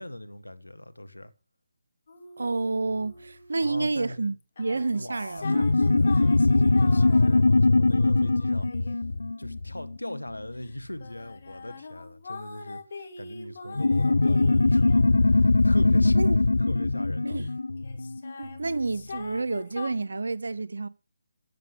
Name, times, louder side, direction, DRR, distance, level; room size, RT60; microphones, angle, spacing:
voice 1, 0.0-1.3 3.6-4.3 4.9-9.0 9.4-15.0 15.2-17.4, left 1 dB, 85° left, 1.5 m, -41 dB
sound 1, 2.1-3.7 4.4-10.0 10.6-17.5 17.8-19.9, left 4 dB, 50° left, 2.3 m, -44 dB
voice 2, 2.4-5.8 16.2-16.4 17.2-17.5 18.4-20.9, right 3 dB, 65° right, 0.8 m, -29 dB
sound 2, 5.4-10.4 13.8-18.7, left 2 dB, 70° left, 0.5 m, -22 dB
13.5 x 7.6 x 5.3 m
figure-of-eight pair, 145°, 0 cm